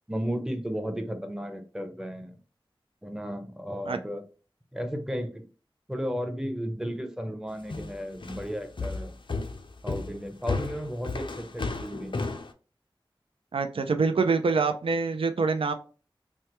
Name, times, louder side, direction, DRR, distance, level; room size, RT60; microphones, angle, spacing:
voice 1, 0.1-2.4 3.0-4.2 4.7-5.4 5.9-9.1 9.8-12.2, equal, 5° right, 6 dB, 0.6 m, -34 dB
sound 1, 7.7-12.5, left 3 dB, 60° left, 0.4 m, -33 dB
voice 2, 13.5-15.7, right 4 dB, 80° right, 8 dB, 0.4 m, -25 dB
3.3 x 2.1 x 2.9 m, 0.36 s
wide cardioid pair, 60°, 9 cm